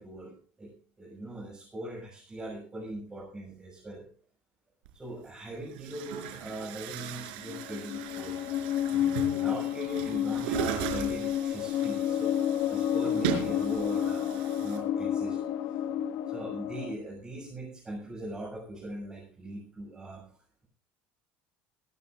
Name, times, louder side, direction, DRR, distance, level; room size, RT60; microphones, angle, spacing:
voice 1, 0.0-4.0 4.9-8.3 8.9-12.4 12.7-15.4 16.3-20.2, right 1 dB, 15° right, -3 dB, 7.1 m, -40 dB
Chatter / Gurgling / Tap, 4.9-5.0 5.7-14.8, right 10 dB, 90° right, 5.4 m, -37 dB
sound 1, 7.5-17.0, left 10 dB, 65° left, 2.0 m, -30 dB
25.5 x 12.5 x 2.6 m, 0.41 s
cardioid pair, 140°, 5 cm